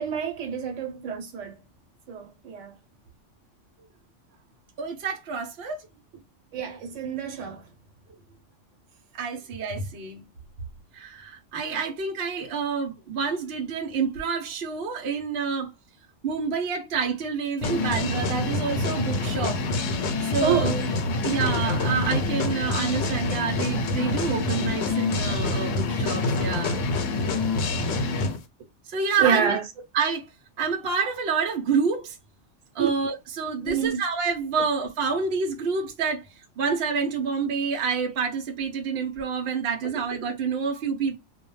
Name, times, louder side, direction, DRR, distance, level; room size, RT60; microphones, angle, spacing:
voice 1, 0.0-1.6 2.1-2.7 6.5-7.6 20.4-20.8 29.2-29.6 32.8-32.9 33.6-34.0, right 7 dB, 75° right, 1.1 m, -27 dB
voice 2, 4.8-5.9 9.1-10.3 10.9-15.7 16.2-19.6 20.2-20.8 21.2-26.9 28.9-29.5 29.9-30.3 30.6-32.2 32.7-36.3 36.6-41.2, right 5 dB, 60° right, 0.9 m, -28 dB
sound 1, 17.6-28.4, left 3 dB, 80° left, 0.9 m, -26 dB
2.3 x 2.1 x 3.0 m
omnidirectional pair, 1.3 m